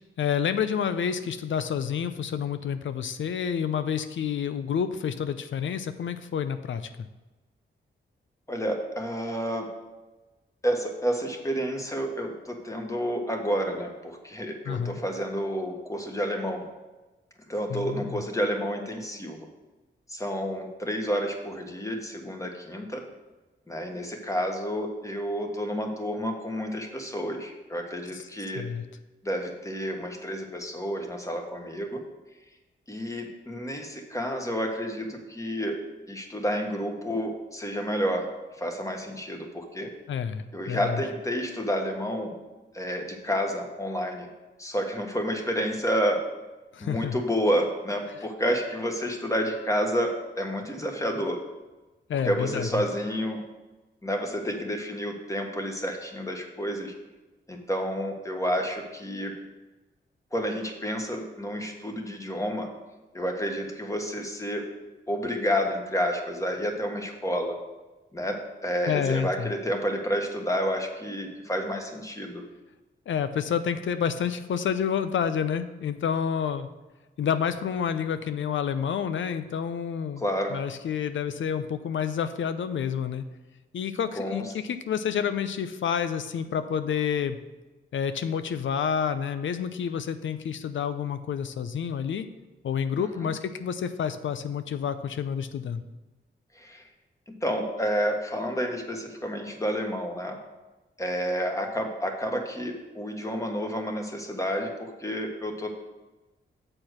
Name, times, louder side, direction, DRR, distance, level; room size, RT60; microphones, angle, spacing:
voice 1, 0.2-7.1 14.7-15.0 17.7-18.2 28.6-28.8 40.1-41.0 46.7-47.2 52.1-52.7 68.9-69.5 73.1-76.7 77.2-80.2 80.5-83.2 83.7-87.4 87.9-92.2 92.6-95.8, left 7 dB, 80° left, 10 dB, 0.6 m, -29 dB
voice 2, 8.5-9.7 10.6-16.6 17.5-19.5 20.1-23.0 23.7-28.6 29.2-32.0 32.9-35.8 36.1-38.2 38.6-39.9 40.5-42.3 42.7-44.3 44.6-46.2 46.8-51.4 52.1-53.4 54.0-56.9 57.5-59.3 60.3-62.7 63.1-64.6 65.1-67.5 68.1-68.4 68.6-72.4 80.2-80.6 84.2-84.5 93.0-93.3 96.5-96.9 97.3-100.4 101.0-105.7, equal, 15° left, 2 dB, 1.5 m, -30 dB
7.6 x 4.5 x 6.4 m, 1.1 s
cardioid pair, 70°, 20 cm